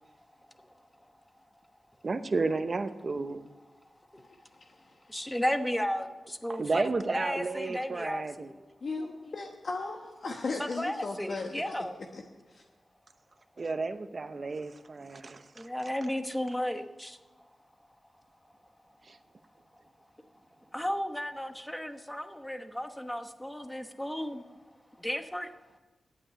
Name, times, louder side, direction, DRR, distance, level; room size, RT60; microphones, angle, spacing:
voice 1, 2.0-3.5 6.5-8.5 13.6-15.7 19.1-19.2, right 3 dB, 45° right, 10 dB, 0.8 m, -32 dB
voice 2, 4.3-4.9 5.2-5.4 7.7-8.0 8.8-11.8 12.1-12.2 12.5-12.6, left 3 dB, 60° left, 2 dB, 1.1 m, -37 dB
voice 3, 5.1-6.8 7.1-8.6 10.6-11.9 15.6-17.2 20.7-24.4 25.0-25.5, equal, 5° left, 8 dB, 1.0 m, -34 dB
11.0 x 8.5 x 8.6 m, 1.2 s
wide cardioid pair, 95°, 0 cm